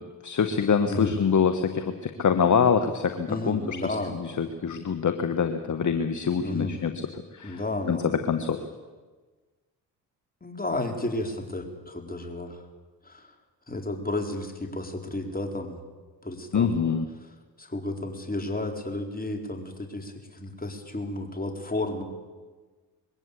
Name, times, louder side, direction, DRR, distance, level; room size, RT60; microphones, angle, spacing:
voice 1, 0.2-3.8 4.1-6.9 7.3-7.6 7.9-8.6 16.5-17.0, left 6 dB, 40° left, 8 dB, 1.5 m, -25 dB
voice 2, 3.3-4.2 6.4-6.8 7.4-8.1 10.4-12.6 13.0-13.3 13.7-15.8 16.2-16.7 17.6-22.0, left 2 dB, 20° left, 3 dB, 4.3 m, -32 dB
21.5 x 16.0 x 8.4 m, 1.3 s
supercardioid pair, 60°, 46 cm